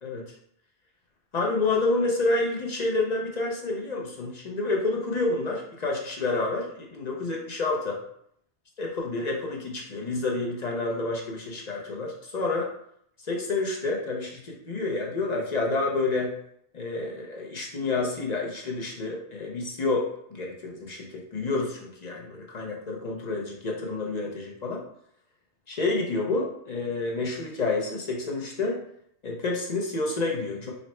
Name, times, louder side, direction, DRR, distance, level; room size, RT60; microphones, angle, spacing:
voice 1, 0.0-0.4 1.3-8.0 8.8-12.7 13.2-16.3 16.7-24.8 25.7-28.8 29.2-30.7, left 3 dB, 45° left, -1 dB, 0.6 m, -29 dB
4.0 x 2.1 x 4.2 m, 0.70 s
omnidirectional pair, 1.2 m